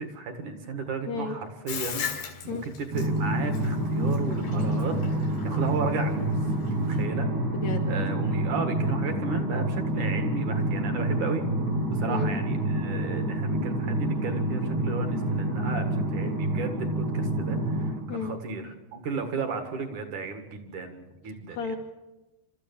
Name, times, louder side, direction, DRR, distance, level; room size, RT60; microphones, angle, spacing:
voice 1, 0.0-6.4 6.7-7.3 7.9-11.4 11.9-21.8, right 4 dB, 55° right, 6 dB, 2.7 m, -34 dB
voice 2, 1.0-1.4 2.5-2.6 7.5-7.9 12.1-12.3 18.1-18.3 21.5-21.8, left 4 dB, 65° left, 4 dB, 1.7 m, -32 dB
Bathtub (filling or washing), 1.7-7.0, left 8 dB, 85° left, 5.1 m, -37 dB
sound 1, 2.9-17.9, right 1 dB, 80° right, 9.3 m, -27 dB
28.5 x 13.5 x 7.2 m, 1.1 s
omnidirectional pair, 5.0 m